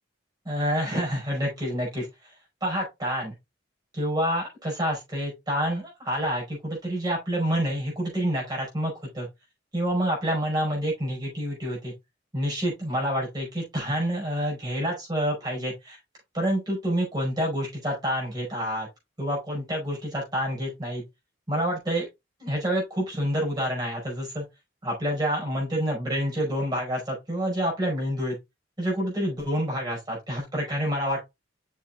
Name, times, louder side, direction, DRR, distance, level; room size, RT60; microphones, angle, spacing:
voice 1, 0.4-2.1 2.6-3.3 3.9-9.3 9.7-11.9 12.3-16.0 16.3-18.9 19.2-21.0 21.5-22.1 22.4-24.5 24.8-28.4 28.8-31.2, equal, 20° right, 5.3 m, -28 dB
7.4 x 6.6 x 2.5 m
head